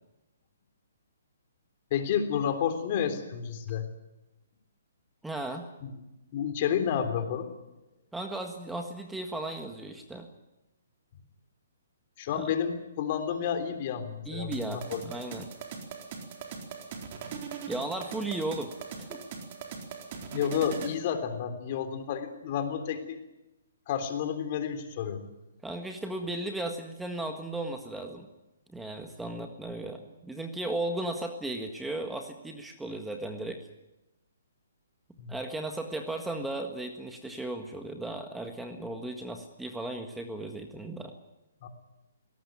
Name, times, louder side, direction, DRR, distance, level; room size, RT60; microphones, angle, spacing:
voice 1, 1.9-3.9 5.8-5.9 6.3-7.5 12.2-15.1 20.3-23.2 23.9-25.3 35.2-35.4 41.6-41.7, left 8 dB, 40° left, 8 dB, 3.5 m, -30 dB
voice 2, 5.2-5.7 8.1-10.3 12.3-12.4 14.2-15.5 17.7-18.7 19.0-19.2 25.6-28.3 28.7-33.6 35.3-41.1, right 2 dB, 5° right, 5 dB, 1.6 m, -36 dB
sound 1, 14.5-21.0, right 6 dB, 40° right, 4.1 m, -40 dB
20.0 x 18.0 x 9.5 m, 0.99 s
hypercardioid pair, 145°, 0 cm